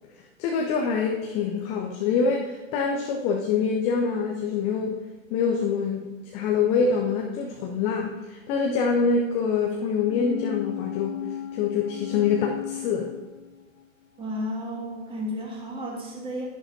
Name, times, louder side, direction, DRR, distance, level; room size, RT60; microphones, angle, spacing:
voice 1, 0.4-5.0 5.3-11.1 11.5-13.1, left 5 dB, 15° left, 2 dB, 0.5 m, -25 dB
sound 1, 10.1-13.8 14.2-14.3, left 12 dB, 75° left, 0.7 m, -36 dB
voice 2, 14.2-16.5, equal, 15° right, -2 dB, 2.0 m, -32 dB
10.5 x 10.5 x 2.7 m, 1.2 s
figure-of-eight pair, 105°, 40 cm